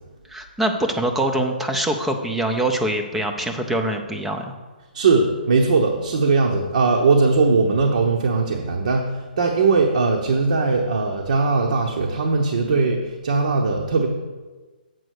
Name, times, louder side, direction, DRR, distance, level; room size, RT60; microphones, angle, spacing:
voice 1, 0.3-4.5 12.7-12.8, right 1 dB, 5° right, 4 dB, 0.5 m, -24 dB
voice 2, 4.9-14.1, right 4 dB, 55° right, 1 dB, 0.9 m, -19 dB
7.8 x 5.0 x 6.4 m, 1.3 s
hypercardioid pair, 170°, 5 cm